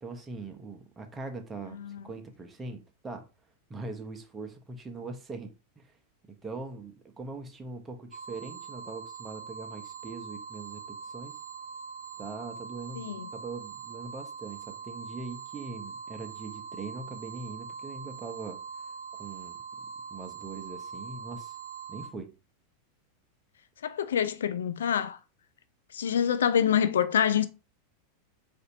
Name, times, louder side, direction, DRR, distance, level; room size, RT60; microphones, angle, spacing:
voice 1, 0.0-3.3 3.7-5.9 6.4-11.4 12.2-18.6 19.1-19.6 20.1-21.6 21.9-22.3, right 3 dB, 20° right, 0.7 m, -41 dB
voice 2, 1.7-2.1 13.0-13.3 23.8-25.2 25.9-27.5, left 8 dB, 70° left, 0.3 m, -26 dB
sound 1, 8.1-22.1, right 6 dB, 70° right, 0.6 m, -42 dB
4.2 x 2.5 x 2.8 m
figure-of-eight pair, 90°, 0 cm